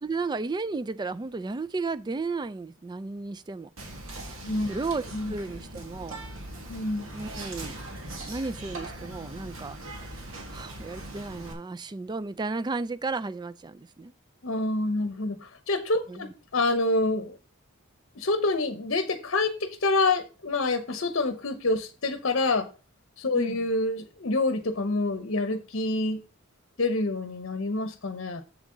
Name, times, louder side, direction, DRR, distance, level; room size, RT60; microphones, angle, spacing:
voice 1, 0.0-3.7 4.7-5.0 5.3-6.2 7.1-8.0 8.3-9.8 10.0-10.2 10.5-14.1 16.1-16.3 23.3-23.6, right 3 dB, 20° right, 0.3 m, -33 dB
Whispering, 3.8-11.5, right 1 dB, 80° right, 2.0 m, -40 dB
voice 2, 6.7-7.1 14.4-17.4 18.1-22.7 23.2-26.2 26.8-28.4, left 2 dB, 60° left, 0.8 m, -27 dB
7.4 x 7.2 x 3.8 m
head